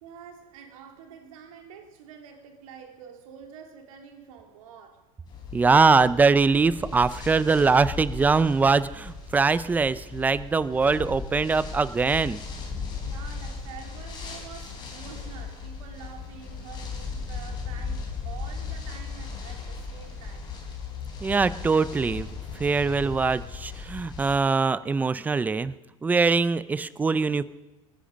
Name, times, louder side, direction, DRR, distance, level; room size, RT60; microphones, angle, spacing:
voice 1, 0.0-5.1 13.0-20.5, right 7 dB, 75° right, 3.1 m, -47 dB
sound 1, 5.2-24.4, left 5 dB, 25° left, 3.9 m, -37 dB
voice 2, 5.5-12.4 21.2-22.3 22.6-25.7 26.0-27.4, right 4 dB, 10° right, 0.4 m, -22 dB
21.0 x 10.5 x 5.2 m
supercardioid pair, 150°, 18 cm